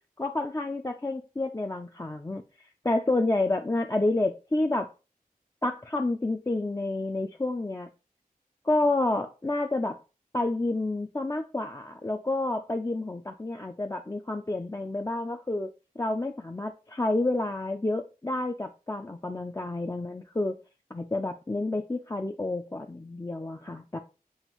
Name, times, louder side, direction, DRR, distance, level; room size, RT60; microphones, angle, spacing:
voice 1, 0.2-2.4 2.8-4.9 5.6-7.9 8.6-10.0 10.3-15.7 16.0-20.6 20.9-24.0, left 2 dB, 20° left, 4 dB, 0.4 m, -29 dB
7.1 x 2.4 x 3.0 m, 0.31 s
wide cardioid pair, 40°, 15 cm